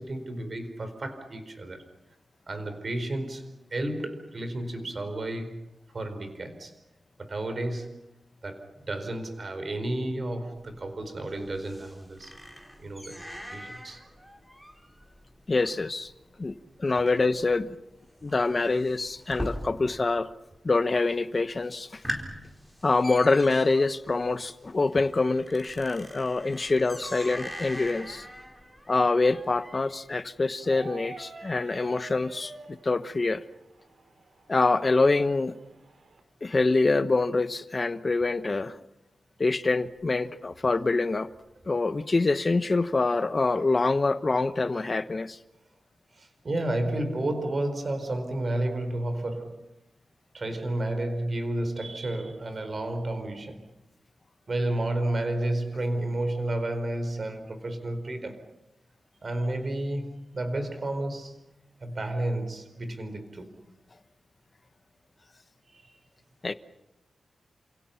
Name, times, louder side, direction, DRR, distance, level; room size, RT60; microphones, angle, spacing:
voice 1, 0.0-1.8 2.5-5.6 5.9-6.7 7.2-8.0 8.4-12.3 12.8-14.0 17.1-17.2 46.1-49.7 50.3-53.7 54.5-58.5 59.2-61.4 61.8-63.6 65.7-66.0, right 1 dB, 35° right, 4.5 m, -32 dB
sound 1, 10.6-20.1 20.4-21.0 21.4-21.5 21.8-30.1, equal, 5° right, 4.2 m, -42 dB
voice 2, 15.5-16.1 16.4-17.8 18.2-20.3 20.6-22.0 22.8-28.2 28.9-33.4 34.5-35.5 36.4-38.8 39.4-41.3 41.6-45.4 66.4-66.5, left 3 dB, 30° left, 1.1 m, -25 dB
sound 2, 30.6-36.2, right 3 dB, 55° right, 3.9 m, -48 dB
29.5 x 27.5 x 5.9 m
wide cardioid pair, 170°, 0 cm